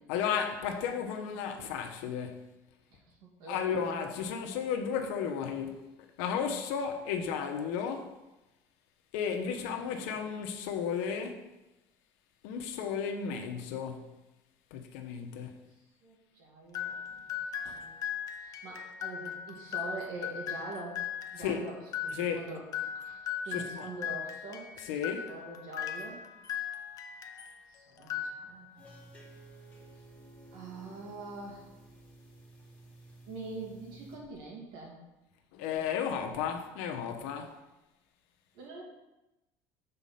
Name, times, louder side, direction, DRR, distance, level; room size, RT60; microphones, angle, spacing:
voice 1, 0.1-2.5 3.5-5.9 6.2-8.2 9.1-11.5 12.4-14.1 14.7-15.5 17.6-17.8 21.4-21.7 22.1-22.4 23.5-23.9 24.9-25.3 35.5-37.6, left 7 dB, 90° left, 1.0 m, -34 dB
voice 2, 2.9-3.7 9.8-10.2 15.4-15.6 16.0-17.9 18.4-21.0 21.3-22.6 23.0-24.7 25.3-26.3 27.7-28.9 30.5-31.7 33.3-35.0 38.5-38.8, right 3 dB, 75° right, 2.4 m, -44 dB
sound 1, 16.7-27.6 28.0-28.8, left 8 dB, 45° left, 0.7 m, -38 dB
sound 2, 28.8-34.2, right 2 dB, 15° left, 2.0 m, -54 dB
6.9 x 4.2 x 5.6 m
cardioid pair, 125°, 8 cm